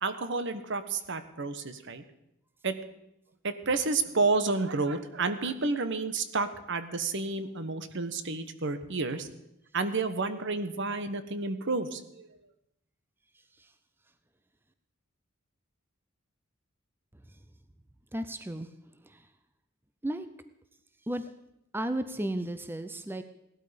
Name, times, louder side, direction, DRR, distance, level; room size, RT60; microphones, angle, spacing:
voice 1, 0.0-2.0 2.6-2.7 3.4-9.3 9.7-12.3, right 3 dB, 60° right, 11 dB, 1.1 m, -30 dB
voice 2, 18.1-18.7 20.0-20.3 21.1-21.2 21.7-23.2, right 1 dB, 10° right, 10 dB, 0.6 m, -33 dB
17.5 x 12.0 x 5.1 m, 0.83 s
head